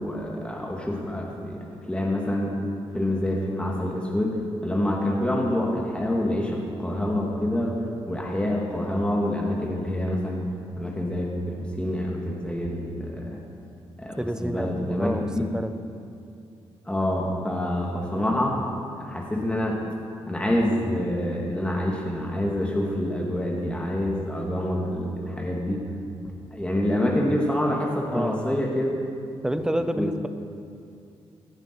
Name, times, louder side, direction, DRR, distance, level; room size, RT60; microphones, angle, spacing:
voice 1, 0.0-2.6 2.9-10.4 10.8-13.4 14.0-15.4 16.9-18.6 18.9-19.8 20.3-25.8 26.5-28.9 29.5-29.7 29.9-30.1, left 1 dB, 10° left, -2 dB, 2.1 m, -27 dB
voice 2, 14.2-15.7 28.1-28.6 29.4-30.3, right 1 dB, 5° right, 9 dB, 0.8 m, -29 dB
16.5 x 10.5 x 4.6 m, 2.6 s
cardioid pair, 75°, 11 cm